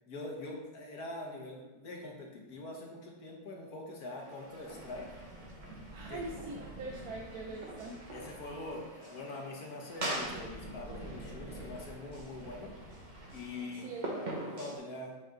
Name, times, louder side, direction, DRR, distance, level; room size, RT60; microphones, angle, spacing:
voice 1, 0.1-5.1 6.1-6.3 8.1-12.7 13.3-13.9 14.5-15.1, left 2 dB, 60° left, 0 dB, 1.7 m, -43 dB
sound 1, 4.2-14.8, right 1 dB, 30° right, 1.2 m, -44 dB
sound 2, 4.5-8.9 9.8-13.5, right 1 dB, 25° left, 1.7 m, -49 dB
voice 2, 5.9-8.0 13.7-14.4, right 2 dB, 65° right, -1 dB, 1.2 m, -43 dB
8.3 x 5.2 x 3.8 m, 1.2 s
omnidirectional pair, 1.9 m